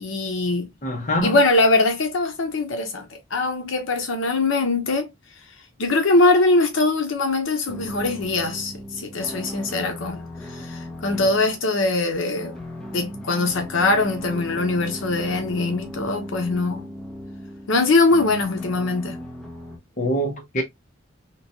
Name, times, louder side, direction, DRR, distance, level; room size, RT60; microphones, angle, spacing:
voice 1, 0.0-0.7 1.2-5.1 5.8-10.2 10.5-12.5 12.9-16.9 17.7-19.2, left 2 dB, 85° left, 0.6 m, -22 dB
voice 2, 0.8-1.4 20.0-20.6, equal, 40° left, 0.8 m, -24 dB
sound 1, 7.7-19.8, equal, 5° left, 0.6 m, -37 dB
3.0 x 2.2 x 2.6 m
head